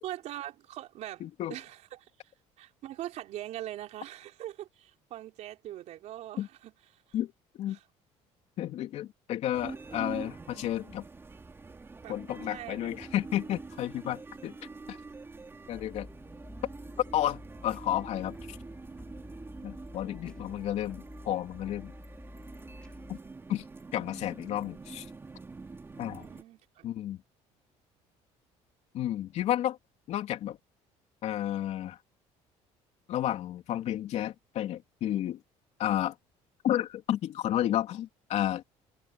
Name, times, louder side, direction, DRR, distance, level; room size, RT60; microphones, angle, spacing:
voice 1, 0.0-1.2 1.5-2.1 2.6-7.0 7.7-7.8 12.0-12.2 12.5-12.9 26.1-26.9, right 13 dB, 65° right, 4.4 m, -42 dB
voice 2, 1.2-1.5 6.4-6.5 7.1-7.8 8.6-11.0 12.1-14.6 14.9-15.0 15.7-16.1 17.1-18.6 19.6-21.9 23.1-23.2 23.5-23.6 23.9-25.1 26.0-26.3 26.8-27.2 28.9-29.8 30.1-30.6 31.2-32.0 33.1-35.4 35.8-36.1 36.6-38.6, left 12 dB, 60° left, 3.2 m, -32 dB
sound 1, 9.5-26.4, right 3 dB, 20° right, 5.4 m, -46 dB
sound 2, 15.7-23.2, left 1 dB, 5° left, 4.6 m, -49 dB
cardioid pair, 130°, 13 cm